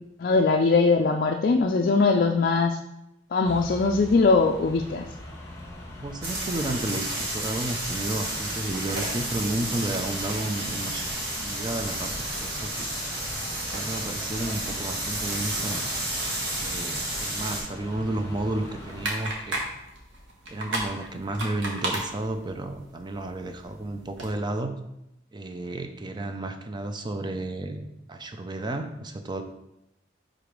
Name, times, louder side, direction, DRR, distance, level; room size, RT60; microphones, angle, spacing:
voice 1, 0.2-2.8 3.3-5.1, left 4 dB, 50° left, 2 dB, 0.3 m, -21 dB
sound 1, 3.4-19.1, left 1 dB, 15° left, 1.1 m, -42 dB
voice 2, 6.0-11.1 11.4-12.9 13.7-15.9 16.6-19.6 20.5-24.7 25.3-29.4, right 2 dB, 25° right, 7 dB, 0.5 m, -32 dB
sound 2, 6.2-17.6, right 1 dB, 60° right, 1.8 m, -31 dB
sound 3, 18.8-24.3, right 1 dB, 85° right, 1.3 m, -35 dB
4.8 x 3.8 x 5.2 m, 0.87 s
head